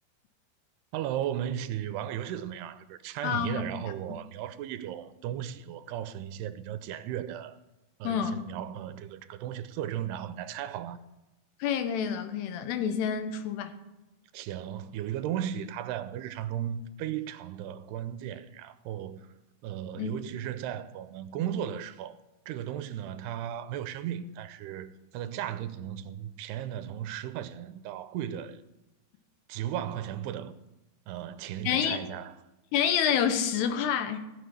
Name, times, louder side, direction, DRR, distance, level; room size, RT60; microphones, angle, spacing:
voice 1, 0.9-7.6 8.0-11.0 14.3-19.3 19.6-22.2 22.5-28.6 29.5-30.5 31.1-32.3, right 10 dB, 85° right, 2.8 m, -36 dB
voice 2, 3.2-3.7 8.0-8.4 11.6-13.7 20.0-20.1 31.6-32.0 32.7-34.2, left 8 dB, 85° left, 3.2 m, -28 dB
16.5 x 6.7 x 9.5 m
omnidirectional pair, 4.7 m